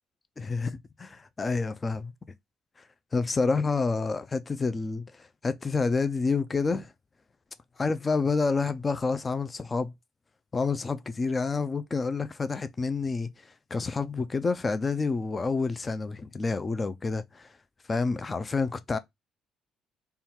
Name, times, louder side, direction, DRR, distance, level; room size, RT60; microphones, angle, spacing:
voice 1, 0.4-2.1 3.1-6.9 7.8-9.9 10.5-17.5 17.9-19.0, left 4 dB, 25° left, 0.3 m, -28 dB
3.6 x 2.3 x 4.2 m
cardioid pair, 125°, 0 cm